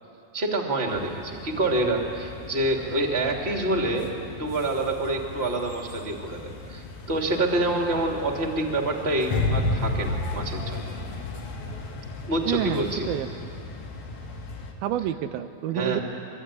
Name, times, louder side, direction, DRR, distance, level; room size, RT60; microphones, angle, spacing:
voice 1, 0.3-10.9 12.2-13.1 15.7-16.0, right 2 dB, 20° right, 1 dB, 2.6 m, -27 dB
sound 1, 0.9-14.7, left 3 dB, 75° left, 4.2 m, -40 dB
sound 2, 9.3-12.5 12.8-13.0, left 2 dB, 55° left, 2.6 m, -28 dB
voice 2, 12.5-13.5 14.8-16.0, right 12 dB, 80° right, 9 dB, 2.6 m, -29 dB
24.5 x 24.0 x 9.8 m, 2.6 s
omnidirectional pair, 4.2 m